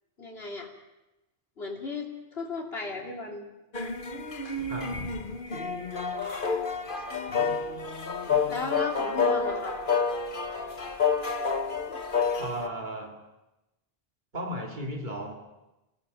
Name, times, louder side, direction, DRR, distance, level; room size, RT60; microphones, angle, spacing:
voice 1, 0.2-0.7 1.6-3.5 6.9-7.6 8.5-9.8 11.4-11.5, left 3 dB, 75° left, 0 dB, 3.2 m, -36 dB
sound 1, 3.7-12.7, left 5 dB, 55° left, 1.5 m, -29 dB
voice 2, 4.7-5.1 12.4-13.2 14.3-15.3, right 1 dB, 50° right, 1 dB, 2.6 m, -35 dB
29.5 x 18.5 x 5.3 m, 0.98 s
omnidirectional pair, 1.0 m